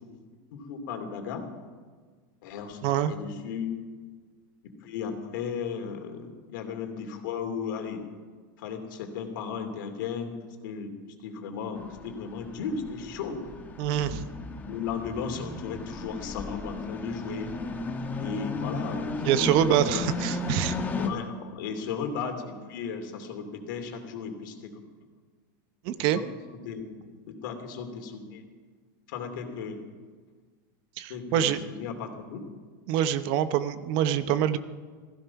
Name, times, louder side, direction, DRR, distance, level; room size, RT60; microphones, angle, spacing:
voice 1, 0.5-1.4 2.4-2.8 3.1-3.9 4.6-8.0 8.6-10.3 10.6-10.9 11.2-13.4 14.1-17.5 18.2-20.1 21.0-24.8 26.1-26.2 26.6-28.4 29.1-29.8 31.1-32.4, left 6 dB, 70° left, 5 dB, 2.7 m, -35 dB
sound 1, 11.8-21.1, left 3 dB, 15° left, 1.3 m, -34 dB
voice 2, 13.8-14.2 19.2-20.7 25.8-26.2 31.0-31.6 32.9-34.6, right 10 dB, 45° right, 13 dB, 0.8 m, -25 dB
15.5 x 15.5 x 5.8 m, 1.5 s
supercardioid pair, 155°, 11 cm